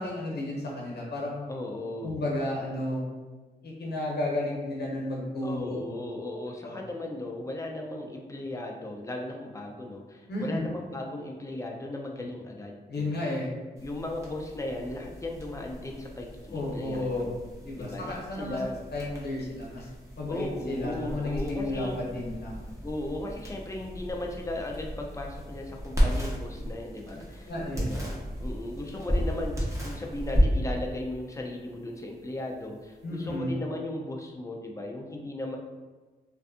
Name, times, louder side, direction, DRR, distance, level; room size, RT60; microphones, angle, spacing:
voice 1, 0.0-1.4 2.0-3.1 3.6-5.8 6.6-6.8 10.3-10.7 12.9-13.5 16.5-17.3 17.6-18.6 18.9-19.9 20.2-22.6 27.5-27.9 33.0-33.5, left 1 dB, 65° left, -3 dB, 0.7 m, -32 dB
voice 2, 1.5-2.1 5.4-13.2 13.8-17.4 17.7-18.8 20.3-22.0 22.8-35.6, left 1 dB, 15° left, 1 dB, 0.4 m, -37 dB
sound 1, 13.8-33.4, equal, 15° right, 0.9 m, -34 dB
2.6 x 2.4 x 2.4 m, 1.3 s
cardioid pair, 70°, 18 cm